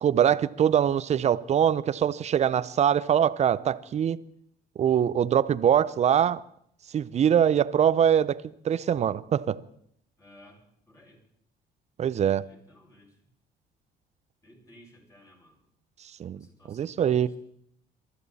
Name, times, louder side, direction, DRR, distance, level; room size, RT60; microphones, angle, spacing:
voice 1, 0.0-4.2 4.8-6.4 6.9-9.6 12.0-12.4 16.2-16.4 16.7-17.3, right 9 dB, 40° right, 0.6 m, -23 dB
voice 2, 10.2-11.2 12.4-13.1 14.4-15.6 16.4-17.4, left 1 dB, 20° left, 6.5 m, -56 dB
23.0 x 13.5 x 4.2 m
cardioid pair, 110°, 17 cm